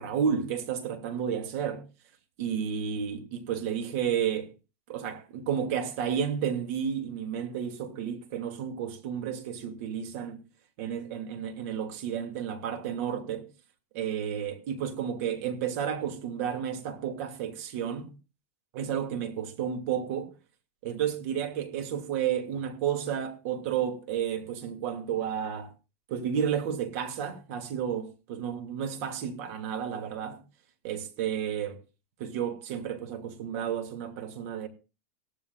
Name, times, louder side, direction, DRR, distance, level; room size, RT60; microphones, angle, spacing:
voice 1, 0.0-1.8 2.4-4.5 4.9-10.4 10.8-13.5 13.9-18.1 18.7-20.3 20.8-25.7 26.1-30.4 30.8-31.8 32.2-34.7, right 8 dB, 60° right, 2.7 m, -32 dB
18.0 x 13.5 x 2.5 m
supercardioid pair, 125°, 8 cm